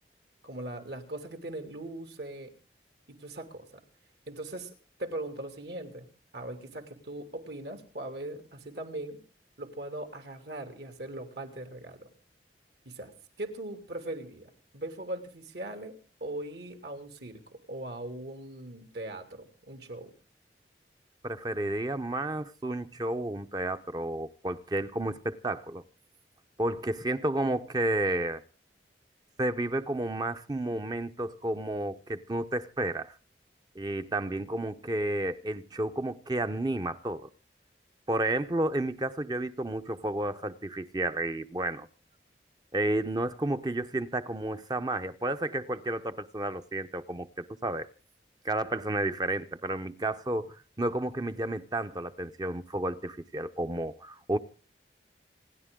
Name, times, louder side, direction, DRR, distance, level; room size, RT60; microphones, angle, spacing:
voice 1, 0.4-2.5 3.1-3.8 4.3-4.7 5.0-9.2 9.6-12.1 12.8-13.1 13.4-20.1, right 1 dB, 65° right, 2.8 m, -40 dB
voice 2, 21.2-25.8 26.6-28.4 29.4-33.1 33.7-37.3 38.1-41.9 42.7-47.9 48.4-54.4, right 1 dB, 25° right, 0.7 m, -31 dB
28.0 x 10.5 x 3.7 m
head